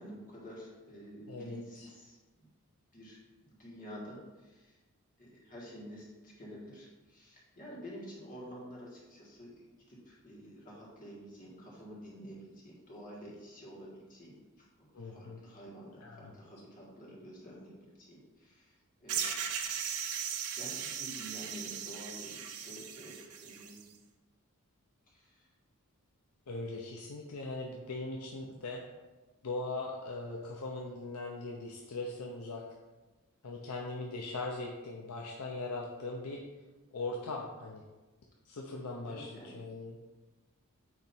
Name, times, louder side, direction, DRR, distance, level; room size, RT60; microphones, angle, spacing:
voice 1, 0.0-2.5 2.9-4.8 5.2-14.4 14.8-19.3 20.5-23.8 25.1-25.5 39.1-39.8, equal, 40° left, -5 dB, 1.8 m, -49 dB
voice 2, 1.3-1.9 14.9-15.4 16.0-16.3 26.5-28.8 29.4-32.6 33.4-36.4 36.9-37.8 38.4-40.0, left 2 dB, 85° left, 0 dB, 0.7 m, -40 dB
sound 1, 19.1-23.8, right 8 dB, 80° right, 0.7 m, -38 dB
8.9 x 3.1 x 4.4 m, 1.2 s
head